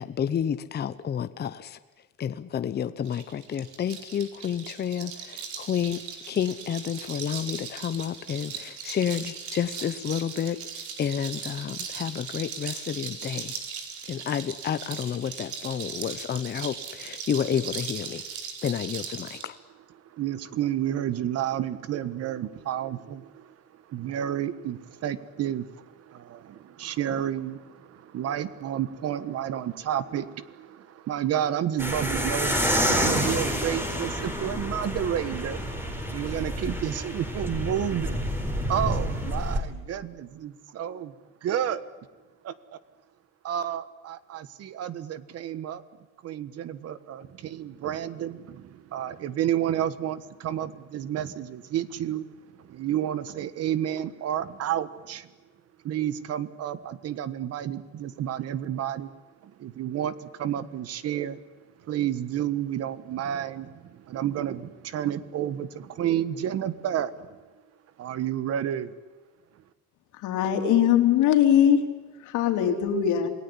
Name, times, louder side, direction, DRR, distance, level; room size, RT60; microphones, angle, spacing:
voice 1, 0.0-1.8 2.2-6.0 6.3-10.6 11.0-13.5 14.1-18.2 18.6-19.6, left 8 dB, 35° left, 11 dB, 0.9 m, -30 dB
sound 1, 3.0-19.5, right 6 dB, 75° right, 4.7 m, -38 dB
voice 2, 20.1-35.6 36.1-38.2 38.7-41.1 41.4-41.9 42.4-42.5 43.4-45.8 46.2-52.3 52.6-55.3 55.8-59.1 59.4-61.4 61.9-67.4 68.0-68.9, right 10 dB, 55° right, 15 dB, 1.4 m, -30 dB
sound 2, 31.8-39.6, equal, 5° right, 4.3 m, -28 dB
voice 3, 70.2-71.8 72.2-73.3, left 9 dB, 90° left, 5 dB, 3.8 m, -21 dB
28.0 x 18.5 x 9.9 m, 1.3 s
cardioid pair, 155°, 29 cm